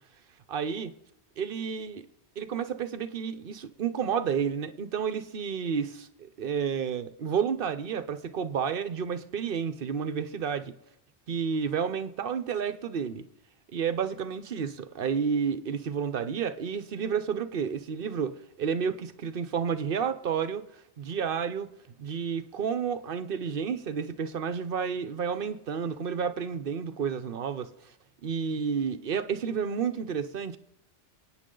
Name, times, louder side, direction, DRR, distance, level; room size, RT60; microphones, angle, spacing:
voice 1, 0.5-0.9 1.4-2.0 2.4-10.7 11.3-13.3 13.7-20.6 21.0-21.7 22.0-27.7 28.2-30.6, right 7 dB, 55° right, 1.0 m, -31 dB
27.0 x 9.1 x 3.9 m
omnidirectional pair, 1.2 m